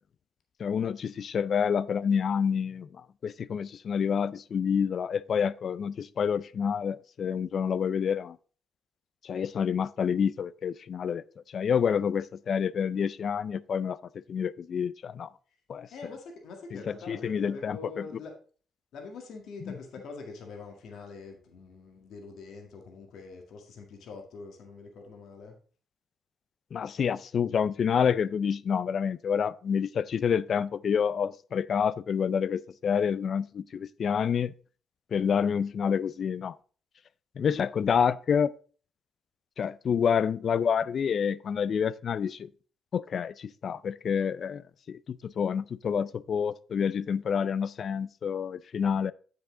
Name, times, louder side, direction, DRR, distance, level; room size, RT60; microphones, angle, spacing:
voice 1, 0.6-8.4 9.2-14.0 14.3-15.3 15.7-15.9 16.7-18.0 19.7-19.8 26.7-34.5 35.1-36.5 37.4-38.5 39.6-42.5 42.9-49.1, left 7 dB, 55° left, 0.3 m, -28 dB
voice 2, 15.9-18.3 18.9-25.5, left 4 dB, 75° left, 1.8 m, -44 dB
7.6 x 6.8 x 3.8 m
cardioid pair, 90°, 0 cm